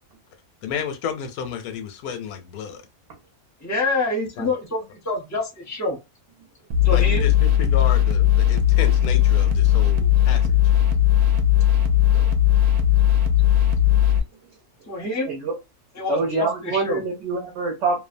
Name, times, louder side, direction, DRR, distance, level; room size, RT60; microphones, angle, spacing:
voice 1, 0.6-2.8 4.4-4.5 6.9-10.5 12.1-12.3, left 7 dB, 80° left, 1.1 m, -32 dB
voice 2, 3.6-6.0 6.8-7.2 14.9-15.3 16.0-17.0, left 2 dB, 20° left, 0.5 m, -26 dB
sound 1, 6.7-14.2, left 11 dB, 85° right, 1.1 m, -18 dB
voice 3, 15.2-15.6 16.1-18.0, right 4 dB, 60° right, 0.9 m, -25 dB
2.7 x 2.2 x 2.5 m
omnidirectional pair, 1.5 m